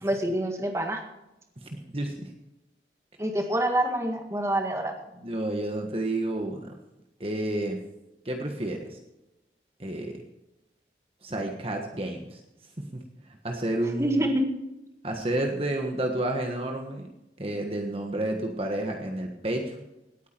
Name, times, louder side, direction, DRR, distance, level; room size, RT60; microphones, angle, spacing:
voice 1, 0.0-1.0 3.2-4.9 14.0-14.5, right 1 dB, 15° right, 4 dB, 1.7 m, -26 dB
voice 2, 1.6-2.3 5.1-6.7 7.2-7.8 8.2-9.0 9.8-10.2 11.2-12.4 12.8-13.0 13.4-14.2 15.0-17.1 17.4-19.8, right 1 dB, 35° right, 2 dB, 1.5 m, -30 dB
18.0 x 9.4 x 4.6 m, 0.94 s
head